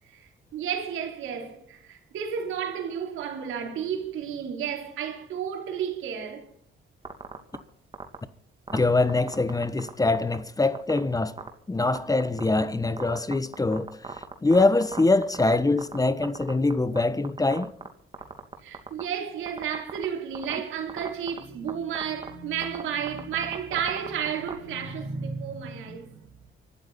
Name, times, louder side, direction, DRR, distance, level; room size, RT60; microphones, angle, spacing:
voice 1, 0.0-6.5 18.6-26.3, right 8 dB, 85° right, 3.9 m, -32 dB
sound 1, 7.0-7.6 7.9-8.2 8.7-9.9 10.1-10.4 10.7-11.0 11.4-11.5 11.9-12.6 13.0-16.0 16.2-17.0 17.2-17.9 18.1-19.0 19.5-20.0 20.3-20.5 20.9-21.4 21.7-21.8 22.0-22.3 22.6-22.8 23.1-24.5, right 4 dB, 25° right, 2.6 m, -36 dB
voice 2, 8.7-11.4 11.7-13.9 14.4-17.7, left 2 dB, 15° left, 1.0 m, -23 dB
24.5 x 13.0 x 4.2 m
cardioid pair, 90°, 20 cm